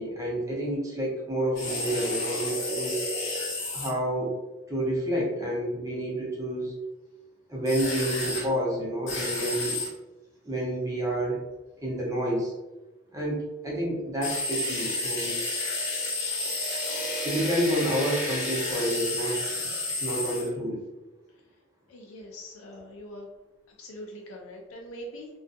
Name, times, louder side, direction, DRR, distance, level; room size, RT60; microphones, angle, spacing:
voice 1, 0.0-3.0 3.7-4.3 4.7-6.7 7.5-9.8 10.4-11.4 11.8-12.5 13.1-15.4 17.2-19.4 20.0-20.8, right 1 dB, 15° right, -4 dB, 0.7 m, -29 dB
sound 1, 1.5-3.9 7.7-8.4 9.1-9.9 14.2-20.5, left 2 dB, 65° left, 0.9 m, -31 dB
voice 2, 21.9-23.3 23.8-25.4, equal, 85° left, 0 dB, 0.4 m, -42 dB
2.5 x 2.2 x 2.5 m, 1.1 s
head